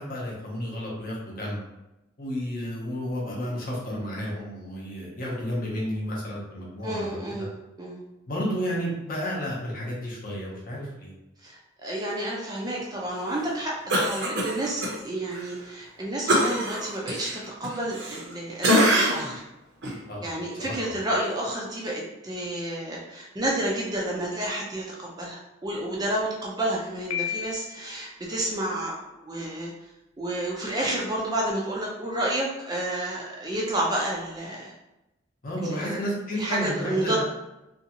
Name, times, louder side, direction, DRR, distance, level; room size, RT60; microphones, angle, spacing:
voice 1, 0.0-1.6 2.2-7.5 8.3-11.1 20.1-20.3 20.6-21.0 35.4-37.2, equal, 45° left, -4 dB, 0.7 m, -32 dB
voice 2, 6.8-7.5 7.8-8.0 11.4-19.4 20.2-29.7 30.2-34.7 35.7-36.0 36.4-37.2, right 1 dB, 20° right, -3 dB, 0.4 m, -30 dB
Cough, 13.9-14.9 15.3-15.5 16.3-18.3 18.6-19.3 19.8-20.0, equal, 60° right, 0.7 m, -24 dB
Piano, 27.1-28.1, left 10 dB, 85° left, 0.4 m, -33 dB
2.5 x 2.3 x 2.8 m, 0.95 s
head